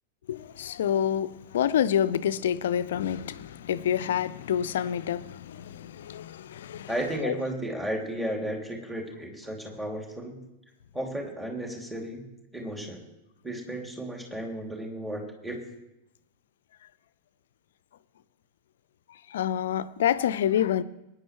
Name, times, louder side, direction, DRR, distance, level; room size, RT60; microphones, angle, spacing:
voice 1, 0.3-6.9 7.2-7.3 19.3-20.8, left 10 dB, 60° left, 0.6 m, -27 dB
voice 2, 6.9-10.4 10.9-12.2 12.5-13.0 13.4-15.6, right 1 dB, 5° right, 3.1 m, -34 dB
21.5 x 9.9 x 3.4 m
figure-of-eight pair, 90°, 0 cm